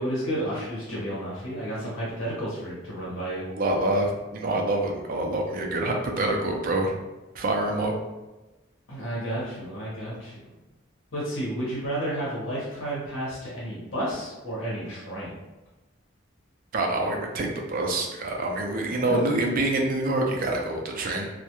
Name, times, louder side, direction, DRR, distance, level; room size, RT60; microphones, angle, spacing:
voice 1, 0.0-3.5 8.9-10.3 11.1-15.3 19.0-19.2, right 1 dB, 75° left, -7 dB, 0.9 m, -31 dB
voice 2, 3.6-6.9 7.3-7.9 16.7-21.3, right 2 dB, 45° right, 1 dB, 0.4 m, -26 dB
2.3 x 2.1 x 2.9 m, 1.1 s
head